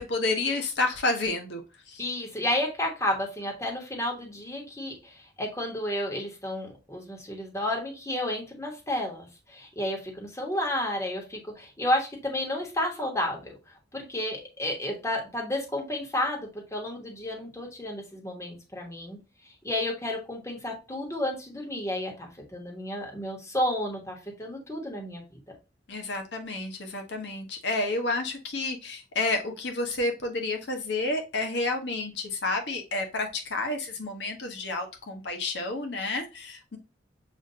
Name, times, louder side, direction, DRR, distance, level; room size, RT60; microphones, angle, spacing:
voice 1, 0.0-1.6 1.9-2.0 25.9-36.8, left 2 dB, 70° left, 4 dB, 0.9 m, -30 dB
voice 2, 2.0-13.5 13.9-19.2 19.6-25.4, left 1 dB, 15° left, 0 dB, 1.3 m, -31 dB
7.0 x 2.5 x 2.7 m, 0.29 s
head